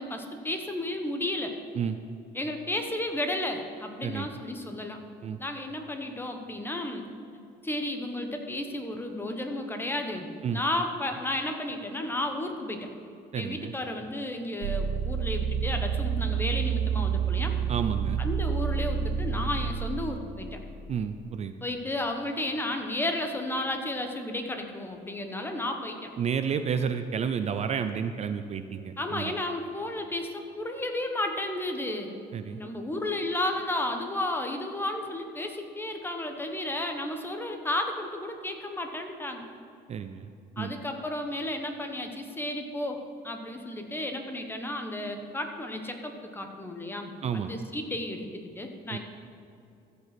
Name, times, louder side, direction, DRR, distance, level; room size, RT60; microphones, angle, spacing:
voice 1, 0.0-1.6 2.3-5.0 5.4-7.1 7.6-12.9 13.3-17.6 18.2-20.6 21.6-26.1 29.0-32.1 32.4-39.5 40.6-49.0, left 1 dB, 15° left, 4 dB, 1.1 m, -33 dB
voice 2, 13.3-13.7 17.7-18.2 20.9-21.5 26.2-29.3 32.3-32.6 39.9-40.3 40.6-40.7 47.2-47.5 48.9-49.0, right 7 dB, 40° right, 9 dB, 0.5 m, -31 dB
sound 1, 14.6-19.9, right 7 dB, 85° right, 0.8 m, -28 dB
14.5 x 5.4 x 6.0 m, 2.6 s
cardioid pair, 110°, 17 cm